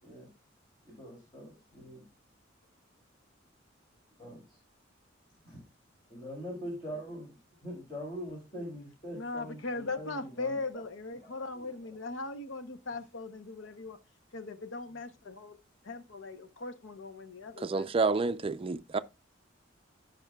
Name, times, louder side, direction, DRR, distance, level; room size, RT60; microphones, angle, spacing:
voice 1, 0.8-2.0 4.2-4.6 5.4-5.6 6.1-7.3 7.6-10.8 11.2-12.0, equal, 25° left, 2.7 m, -43 dB
voice 2, 9.1-14.0 14.3-15.6 15.8-17.9, left 3 dB, 75° left, 0.8 m, -39 dB
voice 3, 17.6-19.0, right 4 dB, 30° right, 0.4 m, -29 dB
15.5 x 5.2 x 2.3 m
head